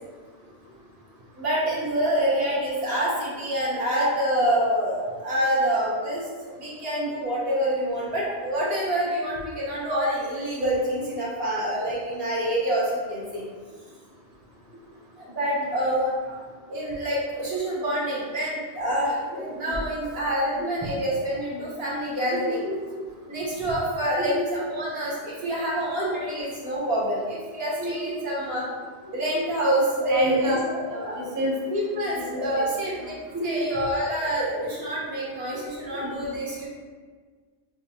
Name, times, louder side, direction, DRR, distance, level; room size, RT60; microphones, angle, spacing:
voice 1, 1.4-6.3 6.6-13.4 15.2-16.1 16.7-22.6 23.3-28.7 29.1-31.2 31.7-33.1 33.4-36.7, right 1 dB, 65° right, -6 dB, 1.3 m, -26 dB
voice 2, 22.3-23.0 24.2-24.5 27.8-27.9 30.1-31.5 31.9-32.0 32.3-32.7 33.3-33.6 35.5-35.6, equal, 25° right, -4 dB, 0.5 m, -29 dB
5.0 x 2.1 x 2.7 m, 1.5 s
omnidirectional pair, 1.1 m